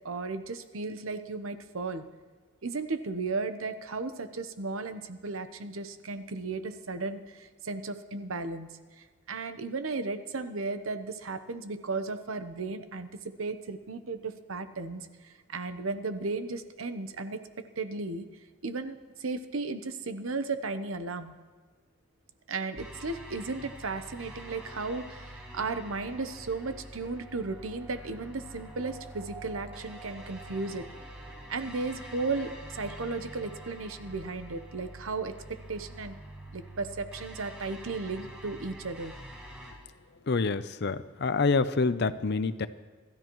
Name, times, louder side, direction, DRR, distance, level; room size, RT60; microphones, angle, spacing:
voice 1, 0.0-2.0 2.6-8.7 9.0-13.1 13.4-17.4 17.8-18.2 18.6-21.3 22.5-30.8 31.5-35.3 35.7-36.1 36.5-39.1, right 3 dB, 80° right, 10 dB, 0.9 m, -35 dB
sound 1, 22.8-39.7, right 1 dB, 10° right, 5.7 m, -46 dB
voice 2, 40.2-42.7, left 4 dB, 50° left, 13 dB, 0.6 m, -27 dB
26.5 x 13.0 x 3.1 m, 1.5 s
head